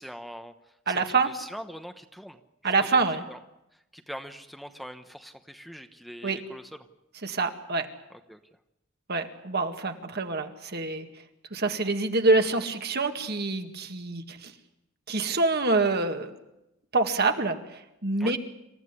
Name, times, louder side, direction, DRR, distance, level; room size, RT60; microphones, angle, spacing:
voice 1, 0.0-3.0 3.3-3.4 3.7-6.9 8.1-8.4 18.2-18.4, equal, ahead, 6 dB, 1.0 m, -43 dB
voice 2, 0.9-1.3 2.6-3.2 6.2-6.4 7.2-7.9 9.1-11.1 11.5-14.5 15.1-16.3 16.9-18.4, right 3 dB, 50° right, 6 dB, 2.0 m, -26 dB
27.0 x 15.0 x 9.8 m, 0.92 s
head